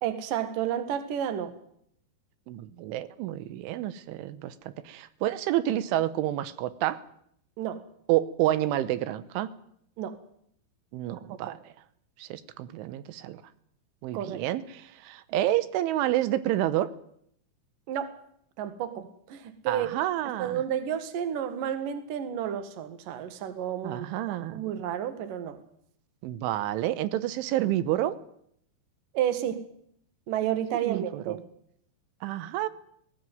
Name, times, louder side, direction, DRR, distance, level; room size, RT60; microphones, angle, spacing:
voice 1, 0.0-1.5 7.6-7.8 10.0-10.2 11.5-11.6 14.1-14.4 17.9-18.2 18.6-19.9 20.4-25.6 29.1-29.6 30.3-31.4, right 10 dB, 55° right, 11 dB, 2.8 m, -31 dB
voice 2, 2.5-7.0 8.1-9.5 10.9-11.6 12.2-13.4 14.0-16.9 19.7-20.6 23.8-24.6 26.2-28.2 30.8-31.4 32.2-32.7, right 13 dB, 90° right, 15 dB, 3.5 m, -29 dB
19.0 x 18.0 x 9.3 m, 0.69 s
omnidirectional pair, 5.4 m